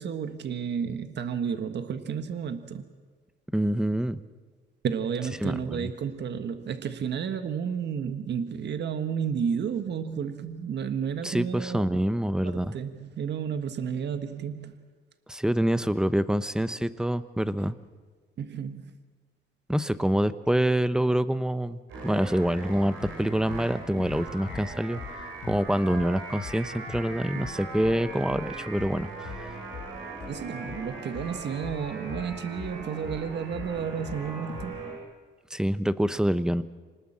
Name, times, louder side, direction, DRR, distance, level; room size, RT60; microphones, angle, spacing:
voice 1, 0.0-2.9 4.8-12.0 12.4-14.8 18.4-18.9 30.3-34.8, right 7 dB, 60° right, 9 dB, 1.6 m, -32 dB
voice 2, 3.5-4.2 5.4-5.9 11.2-12.7 15.3-17.8 19.7-25.0 25.4-29.1 35.5-36.6, right 1 dB, 5° right, 14 dB, 0.9 m, -26 dB
sound 1, 21.9-35.0, right 2 dB, 80° right, 7.9 m, -40 dB
sound 2, 22.7-22.8 23.0-23.2 23.5-25.7 25.9-26.1 26.4-26.6 26.9-27.1 27.4-27.6 27.8-33.3 33.5-34.2 34.5-34.7, left 8 dB, 65° left, 1.6 m, -42 dB
26.5 x 19.0 x 7.5 m, 1.5 s
cardioid pair, 90°, 20 cm